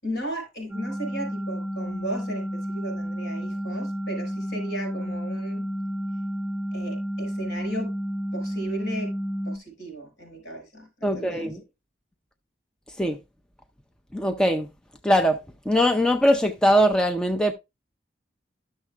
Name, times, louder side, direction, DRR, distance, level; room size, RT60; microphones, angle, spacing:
voice 1, 0.0-5.6 6.7-7.9 8.3-9.1 9.4-11.5, right 1 dB, 70° left, 5.2 m, -35 dB
sound 1, 0.7-9.6, equal, 15° right, 1.0 m, -31 dB
voice 2, 11.0-11.6 13.0-13.2 14.1-14.7 15.0-15.4 15.7-17.5, equal, 5° left, 0.3 m, -21 dB
12.5 x 6.5 x 2.4 m
head